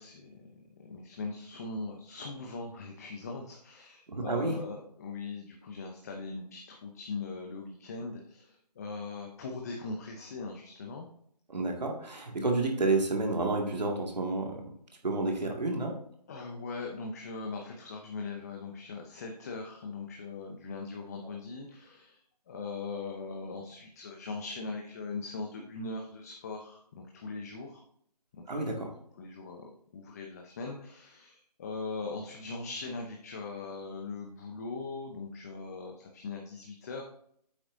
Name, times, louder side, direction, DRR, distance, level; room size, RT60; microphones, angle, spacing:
voice 1, 0.0-11.1 16.3-27.8 28.3-28.8 29.2-37.0, left 3 dB, 25° left, 1 dB, 0.7 m, -40 dB
voice 2, 4.1-4.6 11.5-14.6 15.0-15.9 28.5-28.9, right 2 dB, 80° right, 1 dB, 2.1 m, -30 dB
8.6 x 7.7 x 2.6 m, 0.66 s
figure-of-eight pair, 160°, 21 cm